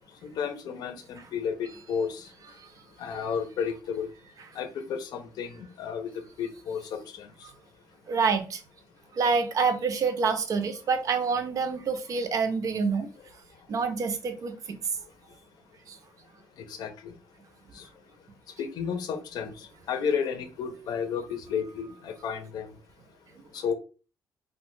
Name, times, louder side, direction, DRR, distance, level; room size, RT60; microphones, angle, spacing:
voice 1, 0.2-2.3 3.0-4.1 4.6-6.1 6.4-7.3 16.7-17.1 17.8-17.9 18.6-22.7 23.5-23.7, left 7 dB, 70° left, 0.6 m, -32 dB
voice 2, 8.1-8.6 9.1-13.1 13.7-14.6 15.9-16.0, right 5 dB, 50° right, 0.5 m, -27 dB
2.7 x 2.2 x 3.1 m
cardioid pair, 100°, 7 cm